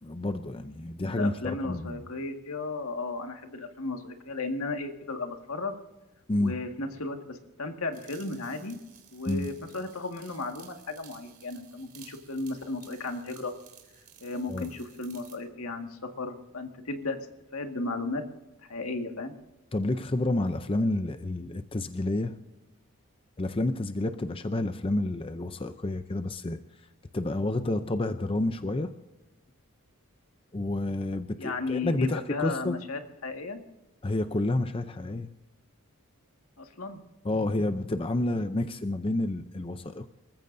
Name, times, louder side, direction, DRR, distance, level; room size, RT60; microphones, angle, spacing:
voice 1, 0.0-2.0 6.3-6.6 9.3-9.5 14.5-14.7 19.7-22.4 23.4-26.6 27.1-28.9 30.5-32.8 34.0-35.3 37.2-40.1, left 2 dB, 25° left, 9 dB, 0.5 m, -29 dB
voice 2, 1.1-5.7 6.4-8.8 9.1-13.5 14.2-17.2 17.5-18.2 18.7-19.3 31.4-33.6 36.6-37.0, left 3 dB, 75° left, 5 dB, 1.8 m, -35 dB
sound 1, 7.9-15.4, right 9 dB, 40° right, 3.3 m, -55 dB
27.0 x 15.0 x 2.7 m, 1.1 s
head